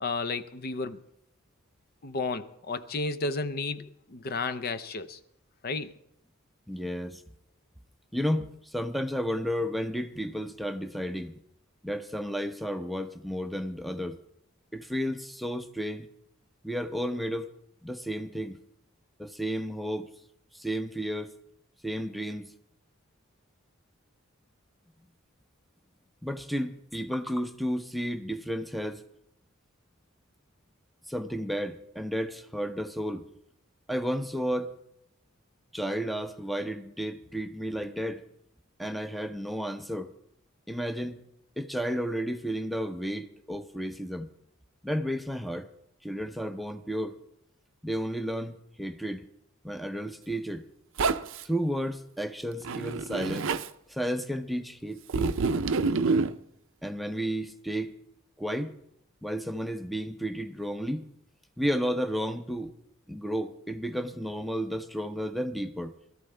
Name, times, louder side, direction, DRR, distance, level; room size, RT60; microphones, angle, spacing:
voice 1, 0.0-1.0 2.0-5.2 5.6-5.9, left 3 dB, 45° left, 0.6 m, -32 dB
voice 2, 6.7-7.2 8.1-11.3 11.8-14.2 14.7-16.1 16.6-17.5 17.8-18.6 19.2-20.1 20.5-21.3 21.8-22.5 26.2-29.0 31.1-33.2 33.9-34.7 35.7-38.2 38.8-40.1 40.7-41.2 41.6-44.3 44.8-45.7 46.0-47.2 47.8-49.3 49.6-50.6 51.4-53.5 53.9-55.4 56.8-57.9 58.4-58.7 59.2-61.0 61.6-62.7 63.1-65.9, equal, ahead, 0.6 m, -32 dB
Zipper (clothing), 51.0-51.4 52.6-53.7 55.1-56.3, right 4 dB, 65° right, 0.5 m, -27 dB
21.0 x 13.5 x 3.3 m
head